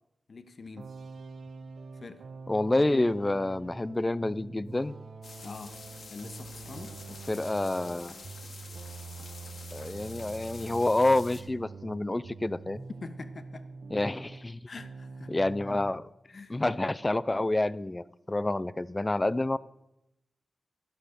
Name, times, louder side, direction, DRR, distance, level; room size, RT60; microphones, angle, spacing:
voice 1, 0.3-0.9 2.0-2.2 5.4-5.8 6.1-6.9 13.0-13.6 14.7-15.3 16.2-16.6, left 4 dB, 55° left, 9 dB, 0.9 m, -44 dB
sound 1, 0.8-14.5 14.8-16.0, right 4 dB, 75° right, 0.6 m, -45 dB
voice 2, 2.5-4.9 7.3-8.1 9.7-12.8 13.9-14.6 15.3-16.1 16.5-19.6, left 2 dB, 25° left, 16 dB, 0.4 m, -28 dB
sound 2, 5.2-11.4, left 4 dB, 75° left, 1.2 m, -48 dB
11.5 x 5.7 x 6.6 m, 0.89 s
cardioid pair, 55°, 0 cm